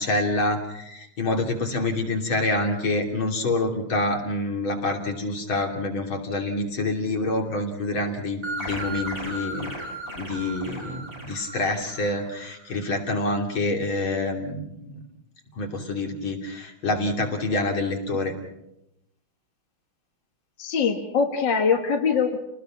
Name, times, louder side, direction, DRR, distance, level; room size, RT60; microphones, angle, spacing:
voice 1, 0.0-9.7 10.2-15.0 15.5-18.3, left 2 dB, 85° left, 2 dB, 3.7 m, -27 dB
sound 1, 8.4-12.8, right 1 dB, 25° right, 7.4 m, -36 dB
voice 2, 20.6-22.4, left 6 dB, 65° left, 3 dB, 2.3 m, -22 dB
29.5 x 19.5 x 6.1 m, 0.85 s
omnidirectional pair, 2.2 m